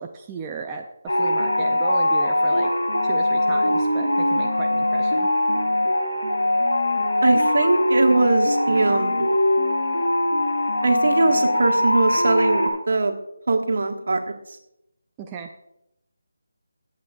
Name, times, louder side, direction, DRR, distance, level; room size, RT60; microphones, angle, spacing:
voice 1, 0.0-2.7 3.0-5.3 15.2-15.5, right 5 dB, 15° right, 1 dB, 0.6 m, -35 dB
sound 1, 1.1-12.7, left 1 dB, 85° left, 5.5 m, -21 dB
voice 2, 7.2-9.3 10.8-13.1 13.5-14.2, right 3 dB, 60° right, 4 dB, 1.8 m, -21 dB
24.0 x 8.5 x 2.5 m, 0.83 s
figure-of-eight pair, 170°, 0 cm